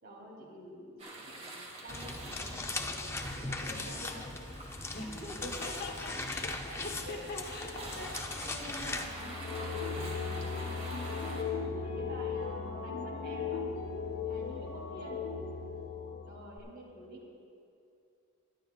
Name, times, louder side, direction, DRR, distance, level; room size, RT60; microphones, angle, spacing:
voice 1, 0.0-4.2 5.2-5.7 6.5-7.2 7.7-8.0 8.3-10.1 11.1-13.6 14.3-15.2 16.2-17.2, right 1 dB, 45° right, -2 dB, 2.7 m, -48 dB
sound 1, 1.0-11.4, right 1 dB, 30° right, 1.7 m, -47 dB
sound 2, 1.9-9.1, left 2 dB, 10° left, 0.5 m, -39 dB
voice 2, 4.9-8.2 10.9-11.5, left 2 dB, 45° left, 2 dB, 1.2 m, -44 dB
sound 3, 9.0-16.6, left 5 dB, 75° left, 1.2 m, -37 dB
22.0 x 11.5 x 2.3 m, 2.5 s
head